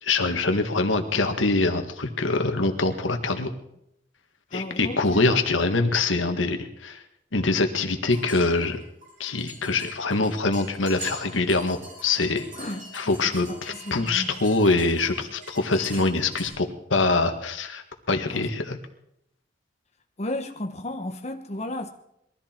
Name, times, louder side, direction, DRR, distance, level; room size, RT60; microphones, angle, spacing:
voice 1, 0.0-3.5 4.5-7.0 7.3-8.8 9.2-12.5 12.9-18.8, left 3 dB, 85° left, 1.7 m, -24 dB
voice 2, 4.5-5.3 12.5-14.4 15.9-16.1 18.3-18.4 20.2-21.9, left 1 dB, 35° left, 1.1 m, -34 dB
sound 1, 8.1-16.5, right 1 dB, 40° right, 6.8 m, -43 dB
22.0 x 14.0 x 4.5 m
head